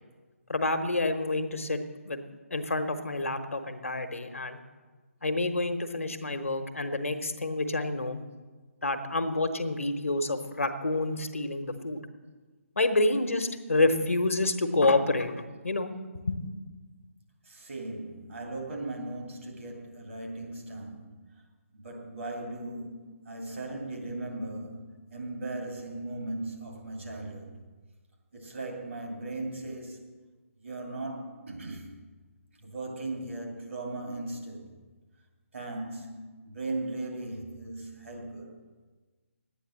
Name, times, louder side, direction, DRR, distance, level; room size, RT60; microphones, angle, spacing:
voice 1, 0.5-2.2 2.5-4.6 5.2-8.2 8.8-12.0 12.8-15.3 15.6-15.9 16.3-16.4, left 2 dB, 70° left, 1.2 m, -28 dB
voice 2, 17.4-21.3 21.7-27.6 28.3-30.2 30.6-31.9 32.6-34.7 35.5-38.5, right 2 dB, 60° right, 2.5 m, -38 dB
11.0 x 9.1 x 7.6 m
figure-of-eight pair, 145°, 8 cm